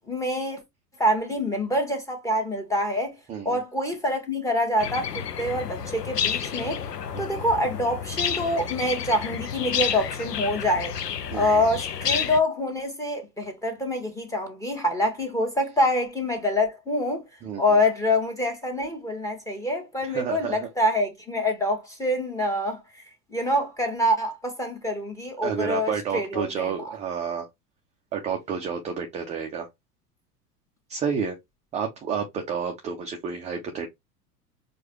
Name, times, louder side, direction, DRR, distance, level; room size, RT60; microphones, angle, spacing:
voice 1, 0.1-0.6 1.0-3.1 3.4-6.8 7.2-10.9 11.3-17.2 17.6-22.8 23.3-26.9, left 1 dB, 5° left, 1.3 m, -26 dB
voice 2, 3.3-3.6 7.1-7.4 11.3-11.6 17.4-17.8 20.0-20.7 25.4-27.5 28.1-29.7 30.9-31.4 31.7-33.9, right 6 dB, 15° right, 0.4 m, -30 dB
sound 1, 4.8-12.4, left 8 dB, 90° left, 0.6 m, -30 dB
4.6 x 2.4 x 3.0 m
figure-of-eight pair, 90°, 47 cm